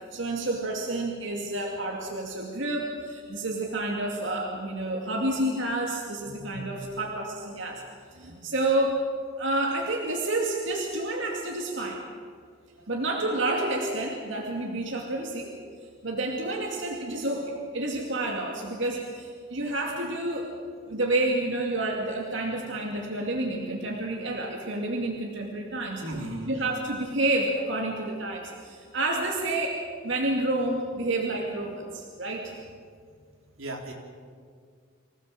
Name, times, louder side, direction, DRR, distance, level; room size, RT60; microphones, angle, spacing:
voice 1, 0.1-7.8 8.1-9.0 9.4-12.0 12.9-15.5 16.0-20.5 20.9-26.0 26.5-29.8 30.0-32.6, right 2 dB, 65° right, 0 dB, 2.4 m, -29 dB
voice 2, 26.0-26.5 33.6-33.9, right 1 dB, 90° right, 1 dB, 3.8 m, -36 dB
25.5 x 17.5 x 7.6 m, 2.1 s
head